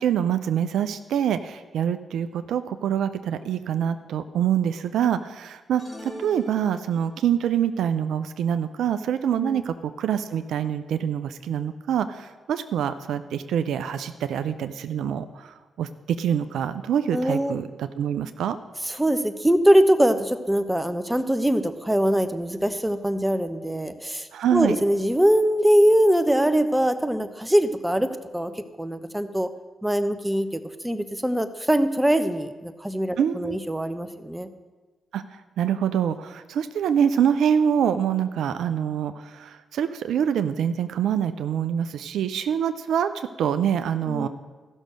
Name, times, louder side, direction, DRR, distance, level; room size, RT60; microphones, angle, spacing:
voice 1, 0.0-18.6 24.3-24.8 33.2-33.6 35.1-44.3, right 9 dB, 75° right, 10 dB, 0.4 m, -25 dB
sound 1, 5.8-7.3, equal, 30° left, 4.5 m, -41 dB
voice 2, 17.1-17.5 18.8-28.1 28.3-28.5 28.8-29.5 29.8-34.5 44.1-44.3, equal, 10° right, 9 dB, 1.0 m, -22 dB
14.0 x 6.3 x 6.6 m, 1.3 s
supercardioid pair, 45°, 0 cm